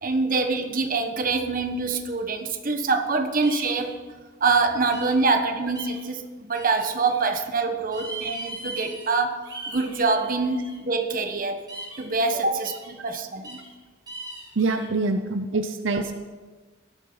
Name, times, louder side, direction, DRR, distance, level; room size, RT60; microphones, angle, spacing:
voice 1, 0.0-3.9 4.4-11.7 12.0-13.6, right 3 dB, 45° right, 6 dB, 1.3 m, -25 dB
sound 1, 3.4-3.9 4.9-5.3 5.8-6.0 6.5-7.3 7.9-9.1 9.4-10.8 11.7-12.1 12.6-12.9 13.4-13.7 14.1-14.9, right 2 dB, 20° right, 4.8 m, -39 dB
voice 2, 14.6-16.1, right 3 dB, 80° right, 7 dB, 0.7 m, -25 dB
17.5 x 12.0 x 4.0 m, 1.4 s
head